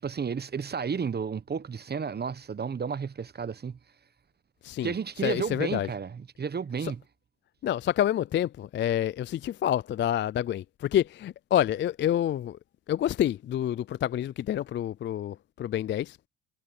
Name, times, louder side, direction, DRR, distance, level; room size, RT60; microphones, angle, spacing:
voice 1, 0.0-3.8 4.8-7.0, right 6 dB, 25° right, 1.0 m, -32 dB
voice 2, 5.2-5.9 6.8-6.9 7.6-12.6 12.9-16.3, left 11 dB, 30° left, 0.4 m, -28 dB
supercardioid pair, 75°, 38 cm